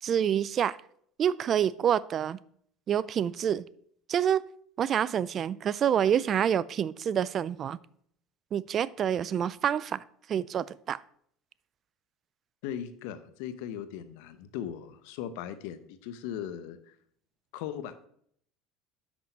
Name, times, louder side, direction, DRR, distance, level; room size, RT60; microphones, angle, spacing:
voice 1, 0.0-0.8 1.2-2.4 2.9-3.7 4.1-4.4 4.8-7.8 8.5-10.0 10.3-11.0, right 9 dB, 40° right, 0.3 m, -27 dB
voice 2, 12.6-16.9 17.5-17.9, left 10 dB, 75° left, 0.7 m, -38 dB
6.1 x 6.0 x 5.4 m
supercardioid pair, 100°, 0 cm